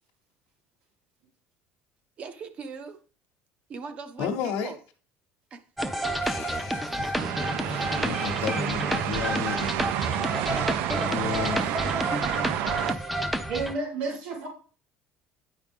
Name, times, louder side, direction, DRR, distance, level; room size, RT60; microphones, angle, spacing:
voice 1, 2.2-3.0 3.7-4.8 5.5-5.6 12.8-13.4, right 5 dB, 35° right, 0.7 m, -41 dB
voice 2, 4.2-4.7 6.2-7.2 7.5-9.8 11.1-11.7, left 8 dB, 75° left, 0.9 m, -33 dB
sound 1, 5.8-13.7, right 1 dB, 5° right, 0.5 m, -30 dB
sound 2, 7.2-12.9, right 12 dB, 65° right, 0.5 m, -30 dB
voice 3, 13.5-14.5, right 3 dB, 80° right, 2.2 m, -31 dB
9.8 x 4.9 x 3.5 m
cardioid pair, 170°, 4 cm